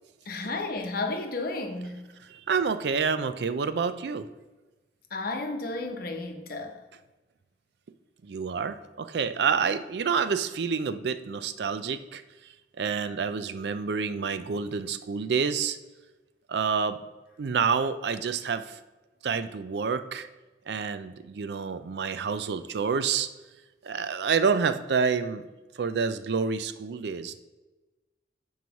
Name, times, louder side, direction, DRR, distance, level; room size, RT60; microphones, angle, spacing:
voice 1, 0.3-2.0 5.1-6.7, left 3 dB, 55° left, 4 dB, 0.9 m, -32 dB
voice 2, 2.3-4.3 8.2-15.8 16.5-17.0 17.4-18.8 19.2-20.3 20.7-23.3 23.8-25.5 25.8-27.4, right 5 dB, 65° right, 11 dB, 0.4 m, -28 dB
9.2 x 3.1 x 5.8 m, 1.2 s
head